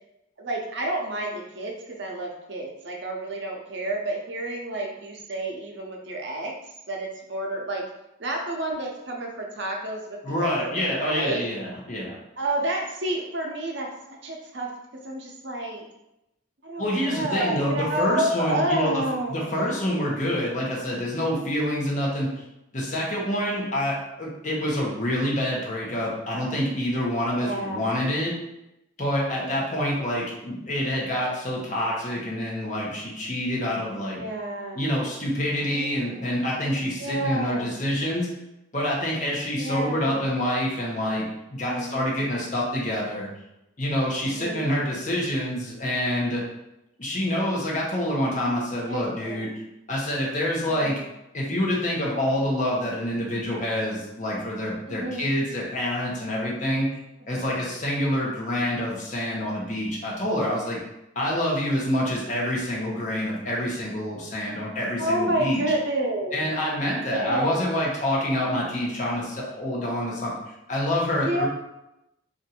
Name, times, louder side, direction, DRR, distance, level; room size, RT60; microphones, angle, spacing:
voice 1, 0.4-6.5 6.9-7.8 8.2-11.4 12.4-14.7 15.0-15.8 16.6-19.7 27.3-28.0 29.4-29.6 34.1-34.8 35.6-36.3 37.0-37.7 39.6-40.2 41.6-42.0 44.2-44.7 48.8-49.5 50.7-51.0 54.9-55.2 57.3-57.4 65.0-66.5 67.1-67.6 71.2-71.5, right 1 dB, 60° right, 0 dB, 0.6 m, -30 dB
voice 2, 10.2-12.2 16.8-19.0 19.3-22.3 22.7-28.3 29.0-34.2 34.7-38.3 38.7-43.3 43.8-46.4 47.0-49.5 49.9-51.0 51.3-56.9 57.3-60.8 61.2-65.6 66.3-70.3 70.7-71.5, equal, 40° left, -3 dB, 0.8 m, -27 dB
2.5 x 2.5 x 4.2 m, 0.88 s
head